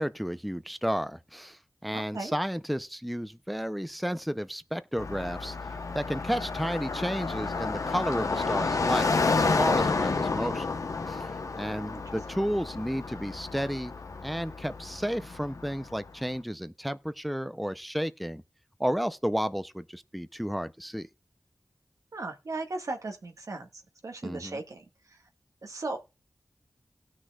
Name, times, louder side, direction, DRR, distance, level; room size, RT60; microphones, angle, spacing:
voice 1, 0.0-5.6 5.9-10.7 11.1-13.9 14.2-18.4 18.8-21.1 24.2-24.6, equal, ahead, 0.6 m, -32 dB
voice 2, 1.9-2.3 22.1-23.7 24.0-24.8 25.6-26.0, right 3 dB, 85° right, 1.6 m, -36 dB
Car passing by, 5.0-16.1, left 4 dB, 85° left, 0.9 m, -30 dB
18.5 x 6.3 x 2.3 m
wide cardioid pair, 65°, 6 cm